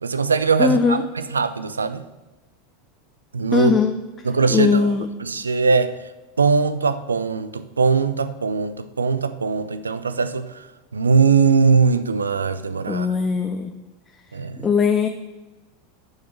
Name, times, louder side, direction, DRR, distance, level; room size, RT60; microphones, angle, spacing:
voice 1, 0.0-2.0 3.3-3.7 4.2-4.9 5.2-5.9 6.4-10.7 10.9-13.1 14.3-14.7, right 5 dB, 80° right, 13 dB, 0.5 m, -20 dB
voice 2, 0.6-1.0 3.5-3.9 4.5-5.1 12.9-13.7 14.6-15.1, left 5 dB, 20° left, 5 dB, 0.6 m, -19 dB
7.1 x 6.6 x 6.0 m, 1.1 s
figure-of-eight pair, 85°, 0 cm